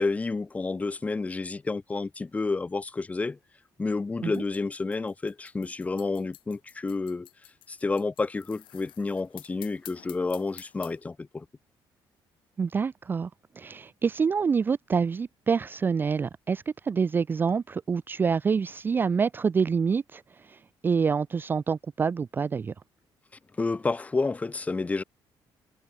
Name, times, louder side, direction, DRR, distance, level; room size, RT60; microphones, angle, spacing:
voice 1, 0.0-3.4 3.8-7.3 7.7-11.4 23.6-25.0, left 3 dB, 15° left, 1.5 m, -30 dB
sound 1, 4.3-11.0, left 13 dB, 70° left, 3.2 m, -50 dB
voice 2, 12.6-13.3 13.6-22.7, right 5 dB, 25° right, 0.4 m, -27 dB
cardioid pair, 160°, 9 cm